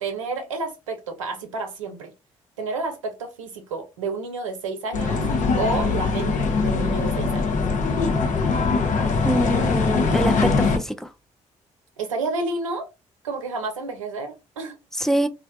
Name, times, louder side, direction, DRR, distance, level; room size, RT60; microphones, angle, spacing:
voice 1, 0.0-2.1 2.6-5.3 5.6-7.5 12.0-12.9 13.2-14.8, right 3 dB, 85° right, 0.6 m, -30 dB
sound 1, 4.9-10.8, left 4 dB, 50° left, 0.7 m, -22 dB
voice 2, 9.2-11.1 15.0-15.3, right 1 dB, 5° left, 0.4 m, -25 dB
2.4 x 2.2 x 2.6 m
figure-of-eight pair, 45°, 16 cm